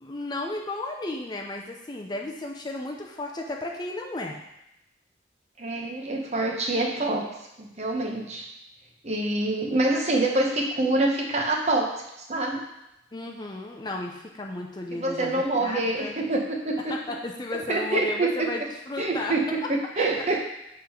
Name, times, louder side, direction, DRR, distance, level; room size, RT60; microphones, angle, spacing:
voice 1, 0.0-4.4 13.1-16.1 16.9-19.4 19.6-19.7 20.0-20.1, left 2 dB, 25° left, 1 dB, 0.5 m, -34 dB
voice 2, 5.6-7.2 7.6-8.5 9.0-11.9 12.3-12.6 14.9-16.9 17.7-18.5 19.0-20.4, right 2 dB, 35° right, 0 dB, 0.9 m, -26 dB
7.3 x 3.8 x 4.4 m, 0.87 s
head